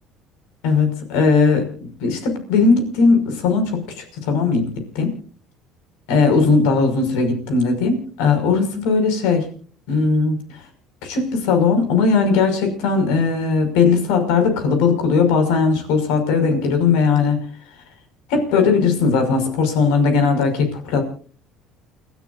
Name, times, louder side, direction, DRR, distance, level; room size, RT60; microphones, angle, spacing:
voice 1, 0.6-1.7 2.0-5.1 6.1-9.5 9.9-10.4 11.0-17.4 18.3-21.0, left 4 dB, 85° left, 6 dB, 5.7 m, -18 dB
30.0 x 13.5 x 2.6 m, 0.43 s
supercardioid pair, 105°, 0 cm